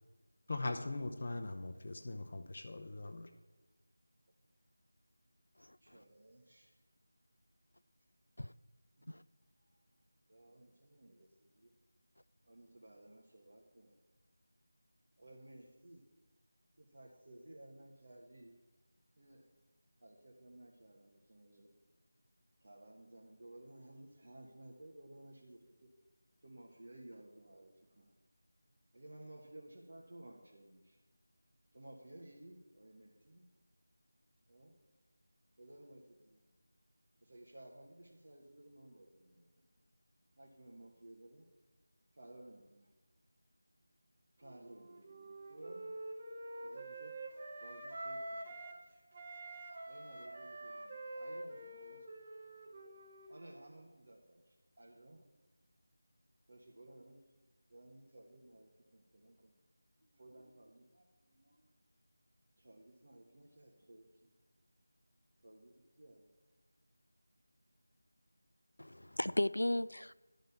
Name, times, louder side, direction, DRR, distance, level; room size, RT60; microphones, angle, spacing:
voice 1, 0.5-3.3, left 2 dB, 45° left, 7 dB, 0.7 m, -41 dB
voice 2, 5.8-6.7 9.0-9.1 9.7-9.8 10.3-11.7 12.4-14.0 15.2-16.0 16.8-18.5 19.2-19.5 20.0-21.7 22.6-25.6 26.4-28.1 28.9-31.0 31.7-33.4 34.5-34.8 35.6-36.4 37.2-39.4 40.4-41.5 42.1-42.9 44.4-45.9 46.6-47.1 47.6-48.6 49.9-52.1 53.3-55.2 56.5-57.2 57.7-59.5 60.0-61.7 62.6-64.3 65.4-66.3, right 1 dB, 60° right, -2 dB, 1.3 m, -57 dB
Wind instrument woodwind instrument, 44.4-48.8 49.1-53.7, right 2 dB, 30° right, 0.9 m, -47 dB
voice 3, 68.8-70.1, left 1 dB, 85° left, 18 dB, 0.3 m, -35 dB
11.5 x 4.0 x 6.9 m, 1.2 s
figure-of-eight pair, 170°, 0 cm